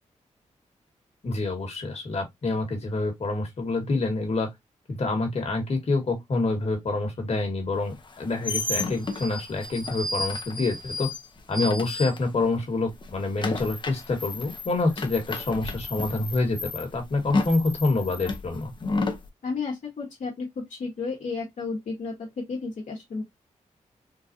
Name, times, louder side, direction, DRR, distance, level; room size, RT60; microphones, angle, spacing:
voice 1, 1.2-4.5 4.9-11.1 11.5-18.7, left 3 dB, 55° left, 1.5 m, -27 dB
sound 1, 8.0-12.6 12.9-19.3, left 2 dB, 40° left, 0.7 m, -32 dB
voice 2, 19.4-23.2, left 4 dB, 70° left, 1.3 m, -32 dB
3.9 x 2.4 x 2.5 m
cardioid pair, 70°, 13 cm